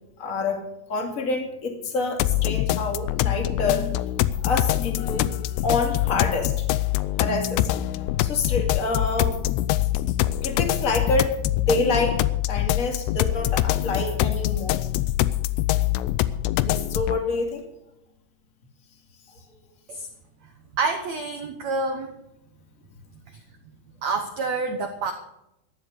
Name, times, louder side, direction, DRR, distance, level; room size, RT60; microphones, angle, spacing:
voice 1, 0.2-0.6 0.9-3.8 4.4-5.3 5.6-6.6 7.2-7.7 8.2-9.4 10.4-11.4 11.7-12.2 12.5-14.8 16.6-17.6, left 3 dB, 25° left, 3 dB, 1.9 m, -27 dB
sound 1, 2.2-17.2, left 14 dB, 80° left, 2.7 m, -24 dB
voice 2, 20.8-22.1 23.3-23.4 24.0-25.1, right 3 dB, 85° right, 5 dB, 1.5 m, -27 dB
14.5 x 10.5 x 6.6 m, 0.86 s
omnidirectional pair, 4.9 m